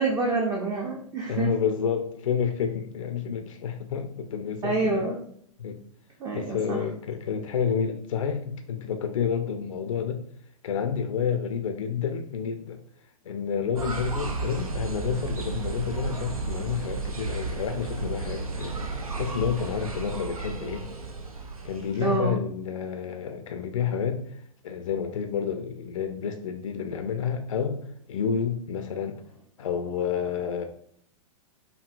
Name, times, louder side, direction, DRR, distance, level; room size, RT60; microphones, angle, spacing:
voice 1, 0.0-1.5 4.6-5.2 6.2-6.8 22.0-22.4, right 3 dB, 20° right, 0 dB, 0.5 m, -27 dB
voice 2, 1.3-5.1 5.6-5.8 6.3-10.2 10.6-12.8 13.2-18.7 19.2-20.9 21.6-24.3 24.6-27.8 28.1-29.2 29.6-30.6, left 7 dB, 65° left, 6 dB, 0.4 m, -29 dB
sound 1, 13.8-22.1, right 3 dB, 90° right, 0.5 m, -33 dB
4.6 x 2.7 x 2.4 m, 0.65 s
figure-of-eight pair, 105°, 18 cm